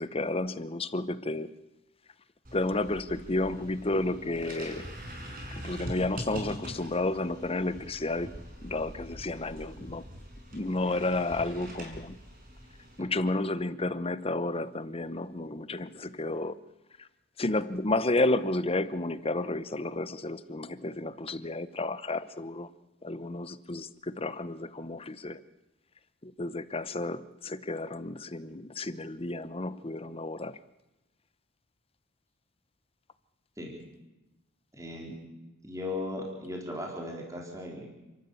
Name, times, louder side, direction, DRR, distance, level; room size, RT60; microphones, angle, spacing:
voice 1, 0.0-1.5 2.5-5.0 5.5-10.0 10.5-12.2 13.0-16.5 17.4-22.7 23.0-25.4 26.2-30.6, left 2 dB, 25° left, 0.8 m, -31 dB
sound 1, 2.4-13.0, equal, 40° right, 5.2 m, -43 dB
voice 2, 34.8-35.1 35.6-37.9, left 2 dB, 15° right, 4.0 m, -37 dB
29.5 x 13.5 x 8.6 m
head